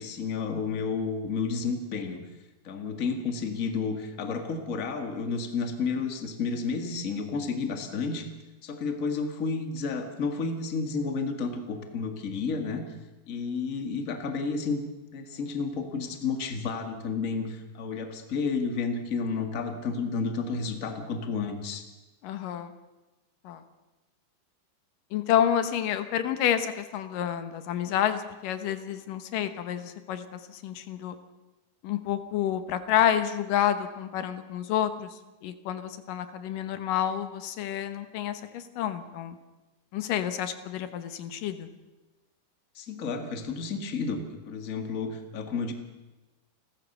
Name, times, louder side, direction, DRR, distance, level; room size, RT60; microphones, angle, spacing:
voice 1, 0.0-2.2 2.6-8.3 8.6-13.0 13.3-14.8 15.1-21.9 42.8-44.2 44.5-45.7, left 4 dB, 30° left, 6 dB, 1.8 m, -31 dB
voice 2, 22.2-22.7 23.4-23.6 25.1-31.2 31.8-39.4 39.9-41.7, left 10 dB, 85° left, 10 dB, 2.9 m, -29 dB
29.5 x 13.5 x 6.7 m, 1.1 s
omnidirectional pair, 3.7 m